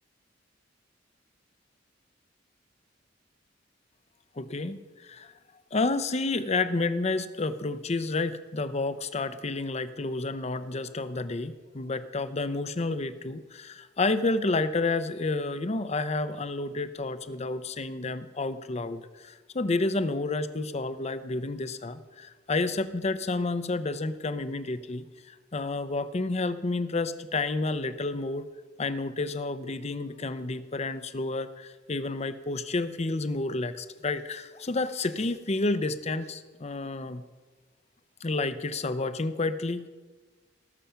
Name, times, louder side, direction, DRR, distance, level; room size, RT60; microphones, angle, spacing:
voice 1, 4.4-5.3 5.7-28.5 28.8-37.2 38.2-39.9, left 3 dB, 35° left, 12 dB, 0.6 m, -30 dB
19.0 x 7.0 x 5.7 m, 1.3 s
head